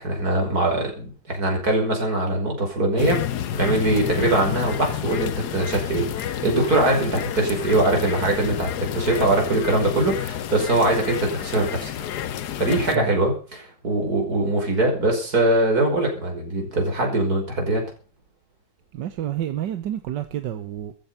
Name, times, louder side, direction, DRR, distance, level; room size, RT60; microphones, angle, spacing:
voice 1, 0.0-3.2 3.5-11.9 12.6-17.8, right 2 dB, 60° right, 6.0 m, -22 dB
sound 1, 3.0-13.0, left 10 dB, 70° left, 1.4 m, -29 dB
voice 2, 18.9-20.9, right 11 dB, 85° right, 1.7 m, -29 dB
14.5 x 13.5 x 5.7 m
omnidirectional pair, 1.9 m